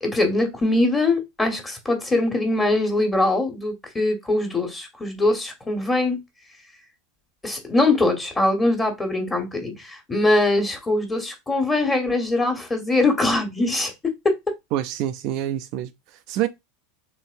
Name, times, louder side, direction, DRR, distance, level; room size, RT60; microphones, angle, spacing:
voice 1, 0.0-6.2 7.4-13.9 14.2-14.3, left 2 dB, 15° left, 1.4 m, -22 dB
voice 2, 14.7-16.5, right 12 dB, 50° right, 0.4 m, -27 dB
4.0 x 3.1 x 2.5 m
figure-of-eight pair, 85°, 0 cm